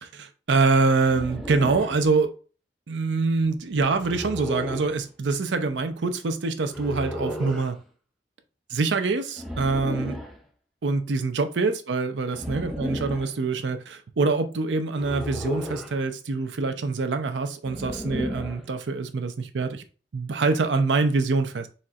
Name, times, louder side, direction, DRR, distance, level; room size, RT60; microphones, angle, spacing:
voice 1, 0.0-2.3 2.9-7.8 8.7-10.2 10.8-19.8 20.1-21.7, right 3 dB, 80° right, 0.5 m, -25 dB
sound 1, 1.1-2.0 4.0-5.0 6.7-7.7 9.4-10.4 12.3-13.3 15.0-16.0 17.6-18.7, left 1 dB, ahead, 0.5 m, -33 dB
4.2 x 3.1 x 2.4 m
head